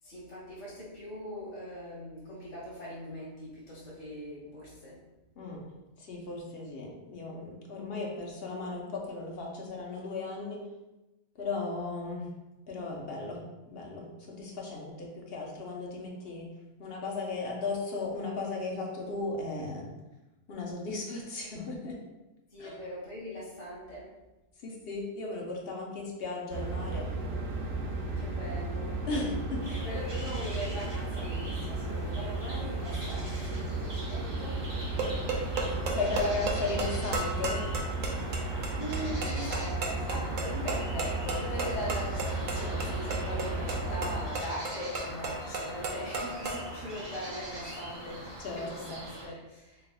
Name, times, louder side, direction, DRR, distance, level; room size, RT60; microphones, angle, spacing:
voice 1, 0.0-5.0 22.5-24.1 28.2-29.0 29.7-35.7 38.2-49.9, equal, 90° left, -7 dB, 1.3 m, -41 dB
voice 2, 6.0-10.6 11.4-12.3 12.7-13.4 13.7-16.5 16.8-19.9 20.5-22.0 22.6-22.8 24.6-27.1 29.1-29.8 35.9-37.7 48.4-48.9, left 3 dB, 55° left, -1 dB, 0.9 m, -36 dB
sound 1, 26.5-44.3, right 2 dB, 90° right, 1.0 m, -34 dB
sound 2, 29.6-49.3, equal, 30° right, 0.8 m, -42 dB
sound 3, 34.7-46.7, right 2 dB, 55° right, 0.6 m, -35 dB
3.8 x 3.4 x 2.3 m, 1.0 s
omnidirectional pair, 1.3 m